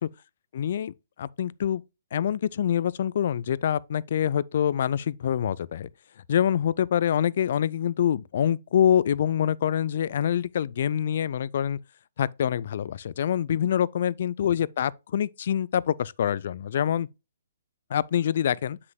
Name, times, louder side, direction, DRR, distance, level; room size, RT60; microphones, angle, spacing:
voice 1, 0.5-0.9 1.2-1.8 2.1-5.9 6.3-11.8 12.2-17.1 17.9-18.8, left 9 dB, 55° left, 0.3 m, -25 dB
7.6 x 6.1 x 2.2 m
figure-of-eight pair, 130°, 0 cm